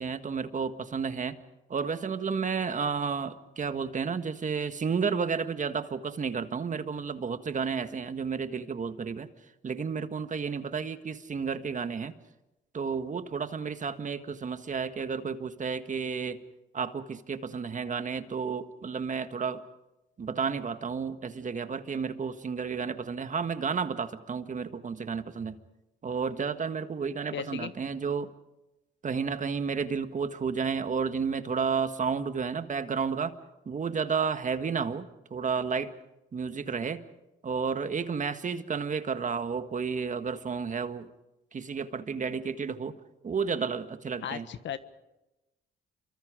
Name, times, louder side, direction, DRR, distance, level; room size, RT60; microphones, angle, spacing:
voice 1, 0.0-1.3 1.7-9.3 9.6-12.1 12.7-16.4 16.7-19.6 20.2-25.6 26.0-28.3 29.0-33.3 33.6-35.0 35.3-35.9 36.3-37.0 37.4-41.1 41.5-42.9 43.2-44.4, right 5 dB, 40° right, 10 dB, 1.6 m, -31 dB
voice 2, 27.3-27.7 44.2-44.8, left 9 dB, 65° left, 12 dB, 1.5 m, -36 dB
28.0 x 24.0 x 5.1 m, 0.98 s
cardioid pair, 90°, 20 cm